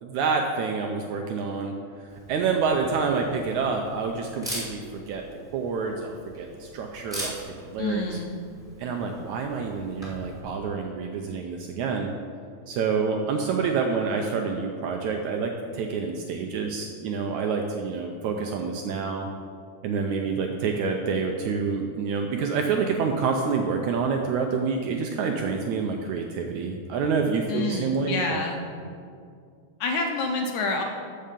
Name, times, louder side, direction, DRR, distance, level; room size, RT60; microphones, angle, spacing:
voice 1, 0.0-1.7 2.3-5.2 5.5-7.3 7.6-8.2 8.8-12.1 12.7-19.3 19.8-28.4, right 5 dB, 80° right, 3 dB, 1.8 m, -27 dB
Camera, 2.1-10.4, equal, ahead, 2.3 m, -41 dB
voice 2, 7.8-8.3 27.5-28.6 29.8-30.8, left 3 dB, 75° left, 3 dB, 1.9 m, -28 dB
14.0 x 5.6 x 5.2 m, 2.3 s
omnidirectional pair, 4.0 m